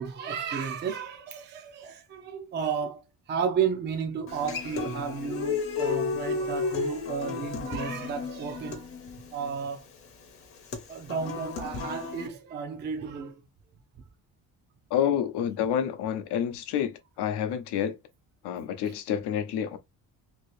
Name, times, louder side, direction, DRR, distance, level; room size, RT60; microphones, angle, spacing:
voice 1, 0.0-3.0 3.3-8.9 9.3-9.8 10.9-13.3, right 6 dB, 30° right, 0.4 m, -32 dB
Human voice / Acoustic guitar, 4.3-12.3, left 5 dB, 35° left, 0.7 m, -33 dB
voice 2, 14.9-18.0 18.4-19.8, left 9 dB, 85° left, 0.7 m, -28 dB
2.9 x 2.7 x 3.1 m
cardioid pair, 175°, 39 cm